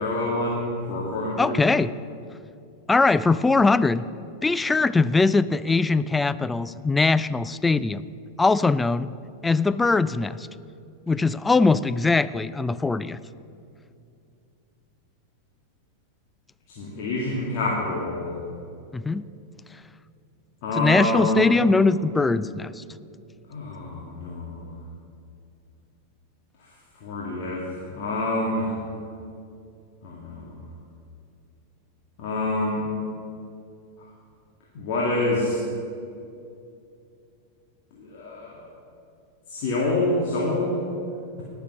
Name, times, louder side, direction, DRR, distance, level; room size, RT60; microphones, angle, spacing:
voice 1, 0.0-1.6 16.7-18.3 20.6-21.5 23.5-24.7 27.0-27.6 27.9-28.7 30.0-30.5 32.2-32.8 34.7-35.6 38.0-38.6 39.5-40.8, left 1 dB, 50° left, -4 dB, 2.1 m, -27 dB
voice 2, 1.4-1.9 2.9-4.1 4.4-8.1 8.4-9.1 9.4-10.5 11.1-13.2 18.9-19.2 20.8-22.8, left 3 dB, 10° left, 16 dB, 0.3 m, -21 dB
18.5 x 6.8 x 6.2 m, 2.5 s
figure-of-eight pair, 90°, 0 cm